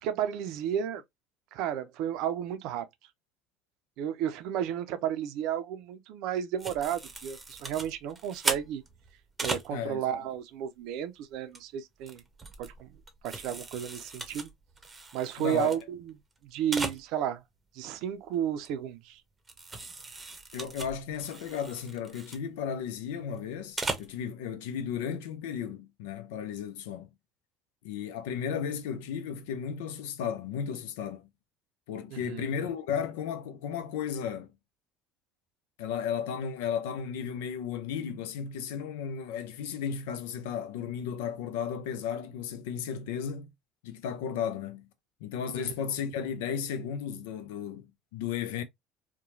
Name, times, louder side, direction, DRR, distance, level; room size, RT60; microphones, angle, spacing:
voice 1, 0.0-1.0 1.5-2.9 4.0-8.8 9.4-12.2 12.6-12.9 13.2-14.5 15.1-16.1 16.4-17.4 17.7-19.2 32.1-32.5 45.5-45.7, right 10 dB, 70° right, 0.5 m, -32 dB
sound 1, 6.6-9.7 11.3-11.6 12.0-15.8 16.1-16.2 16.4-16.5 16.7-17.0 18.6-18.7 19.5-22.4 23.6-24.1, right 3 dB, 20° right, 0.8 m, -38 dB
voice 2, 9.7-10.2 15.4-15.7 20.5-27.1 27.8-31.3 31.9-34.5 35.8-43.5 43.8-44.9 45.2-48.6, left 7 dB, 80° left, 0.5 m, -34 dB
2.9 x 2.2 x 2.5 m
hypercardioid pair, 75°, 0 cm